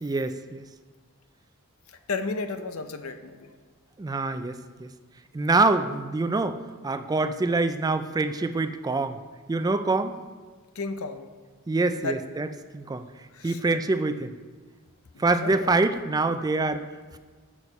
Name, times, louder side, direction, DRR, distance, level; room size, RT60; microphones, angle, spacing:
voice 1, 0.0-0.6 4.0-4.9 5.3-9.2 9.5-10.1 11.7-12.5 12.7-13.1 13.4-14.3 15.2-16.9, right 3 dB, 15° right, 10 dB, 0.3 m, -25 dB
voice 2, 2.1-3.5 10.8-11.3 12.0-12.2 13.3-13.6 15.1-15.8, left 3 dB, 70° left, 8 dB, 0.6 m, -33 dB
7.0 x 6.2 x 5.4 m, 1.5 s
head